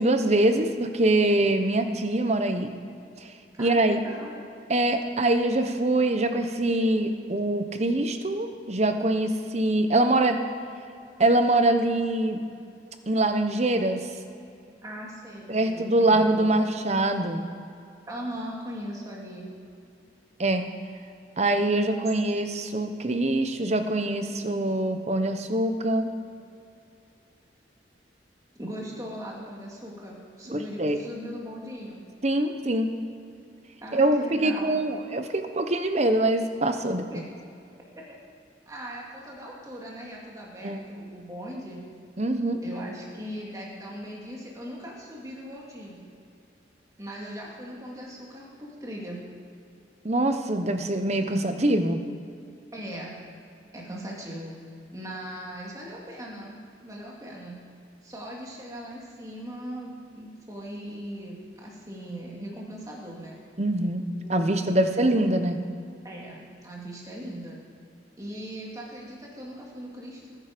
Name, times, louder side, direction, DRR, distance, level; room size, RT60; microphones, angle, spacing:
voice 1, 0.0-2.7 3.2-3.3 3.6-4.0 4.7-10.4 11.2-12.4 13.1-14.0 15.5-17.4 20.4-20.6 21.4-26.1 30.5-31.0 32.2-32.9 33.9-37.1 40.6-40.8 42.2-42.6 50.0-52.0 63.6-64.0 64.3-65.6, right 1 dB, 40° right, 7 dB, 1.0 m, -24 dB
voice 2, 3.6-4.4 14.8-16.5 18.1-19.5 28.6-32.0 33.8-34.8 37.1-37.2 38.7-41.8 42.6-46.0 47.0-49.2 52.7-53.2 53.7-54.5 54.9-56.6 56.8-57.6 58.0-63.4 64.2-64.9 66.0-67.6 68.2-70.4, equal, 20° right, -3 dB, 2.4 m, -39 dB
20.0 x 9.4 x 5.2 m, 2.6 s
head